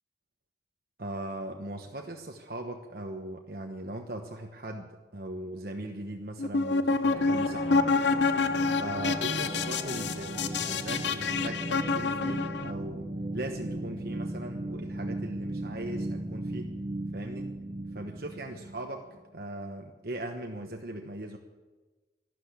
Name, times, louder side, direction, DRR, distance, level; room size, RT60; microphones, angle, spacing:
voice 1, 1.0-7.8 8.8-13.1 13.3-16.8 17.1-17.5 17.9-21.4, right 1 dB, 55° right, 3 dB, 1.1 m, -39 dB
sound 1, 6.4-12.7, left 4 dB, 85° left, 0.8 m, -28 dB
sound 2, 7.1-18.9, right 1 dB, 35° right, 1.6 m, -37 dB
12.5 x 12.5 x 8.3 m, 1.2 s
head